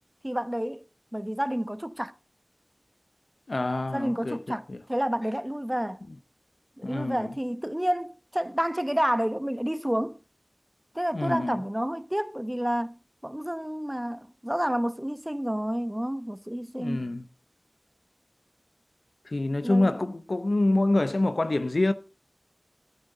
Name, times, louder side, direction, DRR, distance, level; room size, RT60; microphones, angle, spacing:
voice 1, 0.2-0.8 1.1-2.1 3.9-4.6 4.9-6.0 6.8-10.2 10.9-13.0 13.2-17.1 19.6-19.9, equal, 15° right, 0.8 m, -29 dB
voice 2, 3.5-4.8 6.8-7.3 11.1-11.6 16.7-17.2 19.2-21.9, left 2 dB, 75° left, 0.7 m, -26 dB
13.0 x 12.0 x 3.8 m
wide cardioid pair, 45°, 0 cm